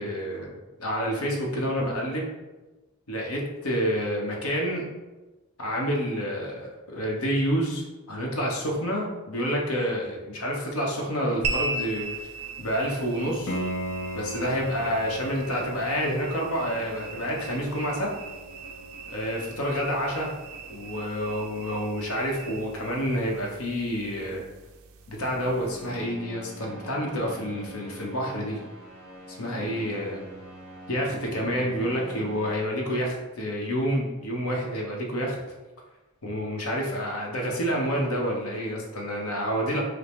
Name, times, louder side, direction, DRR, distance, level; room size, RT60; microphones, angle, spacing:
voice 1, 0.0-2.3 3.1-4.8 5.6-12.3 12.6-13.6 14.1-18.1 19.1-20.3 20.7-24.4 25.1-28.6 29.3-30.2 30.9-35.4 36.2-39.8, equal, 80° left, -1 dB, 0.9 m, -28 dB
sound 1, 11.4-26.1, right 3 dB, 65° right, 0.4 m, -39 dB
Piano, 13.5-24.1 27.4-27.5, equal, 55° left, 0.5 m, -40 dB
sound 2, 25.2-32.5, right 1 dB, 10° left, 1.2 m, -44 dB
5.1 x 2.0 x 3.0 m, 1.1 s
head